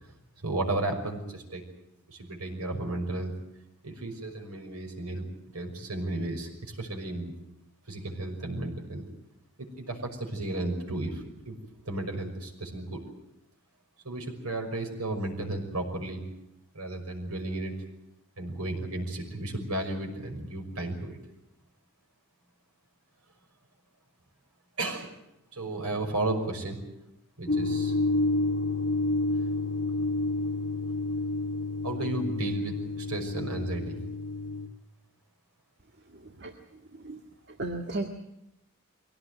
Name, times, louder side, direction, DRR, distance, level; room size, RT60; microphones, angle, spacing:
voice 1, 0.4-1.6 2.1-3.3 3.8-5.2 5.5-7.3 7.9-9.0 9.6-11.6 11.8-13.0 14.0-16.2 16.7-17.7 18.4-21.2 24.8-25.1 25.5-26.8 27.4-27.9 31.8-34.0, right 2 dB, 90° right, 4 dB, 5.9 m, -33 dB
sound 1, 27.5-34.7, left 2 dB, 55° left, 1.5 m, -29 dB
voice 2, 36.0-38.1, right 2 dB, 50° right, 4 dB, 1.9 m, -37 dB
23.5 x 17.5 x 9.3 m, 0.85 s
head